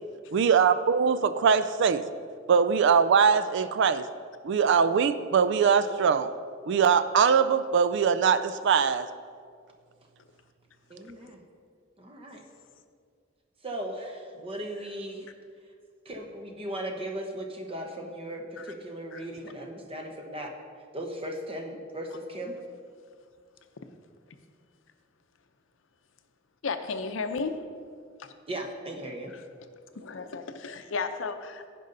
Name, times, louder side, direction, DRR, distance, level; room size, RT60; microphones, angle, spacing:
voice 1, 0.3-2.0 2.5-4.0 4.4-6.3 6.7-9.1, right 6 dB, 65° right, 12 dB, 0.4 m, -22 dB
voice 2, 10.9-11.4 12.0-12.4 13.6-15.3 16.0-20.5 20.9-22.6 28.5-29.3, right 1 dB, 30° right, 2 dB, 1.1 m, -37 dB
voice 3, 26.6-27.5 28.2-28.3 29.3-29.4 29.9-31.7, left 4 dB, 70° left, 8 dB, 0.6 m, -33 dB
15.5 x 5.3 x 3.9 m, 2.1 s
head